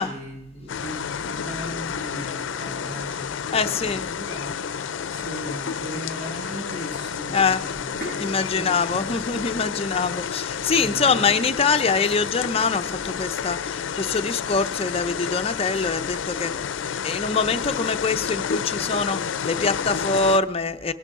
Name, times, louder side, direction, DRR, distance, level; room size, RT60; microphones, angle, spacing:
voice 1, 0.0-4.5 5.1-7.8 8.1-9.2 10.7-11.3, equal, 65° right, -2 dB, 5.7 m, -38 dB
sound 1, 0.7-20.4, left 7 dB, 80° left, 0.4 m, -30 dB
voice 2, 3.5-4.1 7.3-7.6 8.2-16.6 17.0-20.9, left 4 dB, 30° left, 9 dB, 0.5 m, -24 dB
Sink (filling or washing), 7.6-18.4, left 1 dB, 50° right, 5.1 m, -47 dB
18.5 x 10.5 x 3.6 m, 0.85 s
head